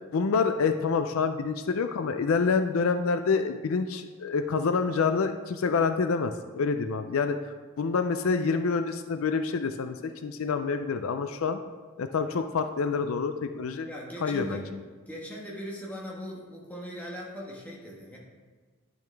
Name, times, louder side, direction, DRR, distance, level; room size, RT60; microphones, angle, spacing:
voice 1, 0.1-7.4 7.8-11.6 12.0-13.9 14.2-14.6, left 5 dB, 70° left, 8 dB, 0.4 m, -27 dB
voice 2, 13.8-14.7 15.1-18.2, equal, 5° left, -4 dB, 1.4 m, -39 dB
10.5 x 6.2 x 3.4 m, 1.4 s
head